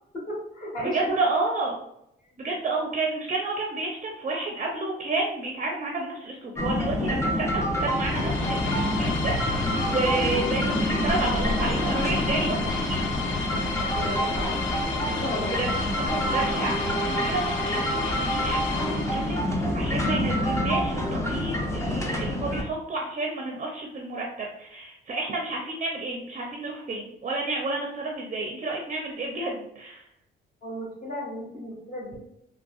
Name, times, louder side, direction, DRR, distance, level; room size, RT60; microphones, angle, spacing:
voice 1, 0.1-1.2 2.4-2.5 13.9-14.5 15.0-15.7 30.6-32.2, equal, 45° left, -4 dB, 1.5 m, -34 dB
voice 2, 0.8-1.7 2.4-8.6 9.0-13.1 15.6-30.0, right 2 dB, 40° right, 0 dB, 0.6 m, -30 dB
sound 1, 6.6-22.6, equal, 15° left, 0.6 m, -27 dB
sound 2, 7.8-19.6, left 5 dB, 90° left, 0.5 m, -33 dB
3.6 x 2.1 x 2.4 m, 0.77 s
cardioid pair, 90°, 20 cm